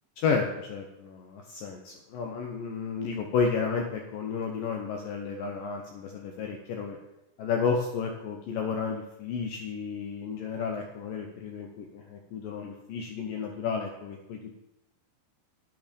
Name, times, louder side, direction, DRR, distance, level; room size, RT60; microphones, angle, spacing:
voice 1, 0.2-7.0 7.4-14.4, left 5 dB, 75° left, 2 dB, 2.1 m, -32 dB
10.0 x 9.8 x 5.2 m, 0.92 s
omnidirectional pair, 5.1 m